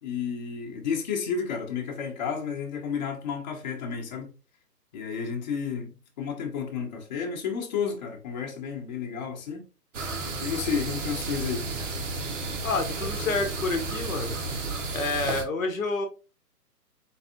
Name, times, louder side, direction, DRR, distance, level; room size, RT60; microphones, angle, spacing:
voice 1, 0.0-4.3 4.9-9.6 10.4-11.7, left 6 dB, 25° left, 0.9 m, -31 dB
sound 1, 9.9-15.4, right 3 dB, 45° right, 0.9 m, -32 dB
voice 2, 12.6-14.3 14.9-16.1, left 3 dB, 55° left, 0.9 m, -28 dB
4.1 x 3.3 x 2.6 m
figure-of-eight pair, 140°, 50 cm